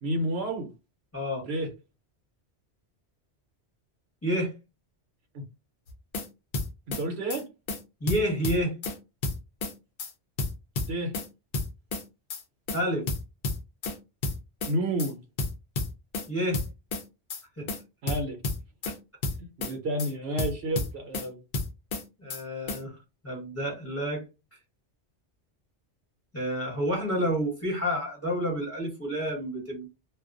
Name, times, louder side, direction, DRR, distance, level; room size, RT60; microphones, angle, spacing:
voice 1, 0.0-0.7 1.5-1.7 5.3-5.4 6.9-7.5 10.9-11.1 14.7-15.2 18.0-18.4 19.6-21.4, right 1 dB, 70° right, 0.9 m, -30 dB
voice 2, 4.2-4.5 8.0-8.7 12.7-13.0 16.3-16.6 17.6-17.7 22.2-23.0 23.2-24.2 26.3-29.9, equal, 15° left, 1.0 m, -29 dB
sound 1, 5.9-6.3 6.5-7.0 7.3-7.4 7.7-7.8 8.1-9.0 9.2-9.7 10.0-10.1 10.4-11.3 11.5-12.0 12.3-12.4 12.7-12.8 13.1-13.9 14.2-14.7 15.0-15.1 15.4-16.3 16.5-17.0 17.3-17.4 17.7-17.8 18.1-18.9 19.2-19.7 20.0-20.1 20.4-21.3 21.5-22.0 22.3-22.4 22.7-22.8, left 3 dB, 55° left, 0.7 m, -31 dB
2.3 x 2.2 x 2.4 m
omnidirectional pair, 1.1 m